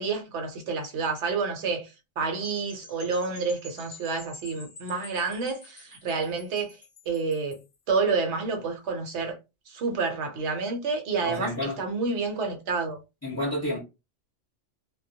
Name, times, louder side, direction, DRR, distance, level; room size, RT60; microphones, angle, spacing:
voice 1, 0.0-6.8 7.1-7.6 7.9-9.4 9.7-13.0, right 4 dB, 65° right, 1.0 m, -29 dB
sound 1, 2.4-7.7, left 2 dB, 40° left, 0.6 m, -48 dB
voice 2, 11.2-11.8 13.2-13.8, left 1 dB, 15° left, 0.9 m, -30 dB
2.3 x 2.1 x 2.6 m
omnidirectional pair, 1.3 m